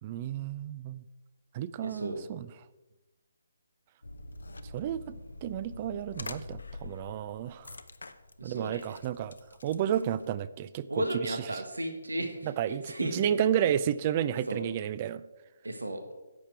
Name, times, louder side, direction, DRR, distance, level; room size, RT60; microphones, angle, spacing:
voice 1, 0.0-1.0 1.5-2.5 4.7-5.1 5.4-7.7 8.4-9.3 9.6-11.6 12.4-15.2, right 10 dB, 30° right, 16 dB, 0.4 m, -31 dB
voice 2, 1.8-2.2 8.4-8.8 10.9-13.5 14.5-14.6 15.6-16.0, right 1 dB, 90° right, 5 dB, 1.5 m, -34 dB
sound 1, 4.0-10.3, left 2 dB, 80° left, 0.8 m, -45 dB
10.5 x 7.4 x 4.6 m, 1.1 s
figure-of-eight pair, 150°, 0 cm